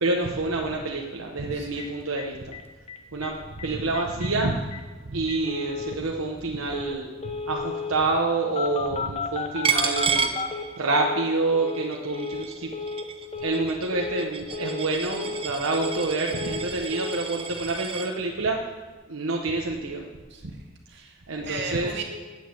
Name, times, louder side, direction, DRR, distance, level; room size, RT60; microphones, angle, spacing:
voice 1, 0.0-2.6 3.1-4.7 5.0-7.1 7.5-10.3 10.8-12.7 13.4-18.7 19.1-20.0 20.4-20.5 21.3-22.0, right 2 dB, 75° right, 0 dB, 1.0 m, -27 dB
voice 2, 1.5-1.9 20.3-21.2 21.4-22.0, right 4 dB, 55° right, 1 dB, 2.1 m, -36 dB
Telephone, 1.8-1.9 2.2-2.3 2.5-2.6 2.9-3.3 3.6-3.7 3.9-4.3 4.7-4.8 5.3-6.0 6.7-7.0 7.2-8.0 8.6-11.3 11.5-11.9 12.1-12.5 12.7-13.1 13.3-13.7 13.9-14.3 14.5-14.9 15.1-16.1 16.3-16.7 16.9-17.2, left 4 dB, 30° left, 0.9 m, -33 dB
Coin (dropping), 9.6-11.1 11.5-18.1, right 6 dB, 25° right, 0.6 m, -31 dB
9.5 x 8.6 x 8.4 m, 1.3 s
head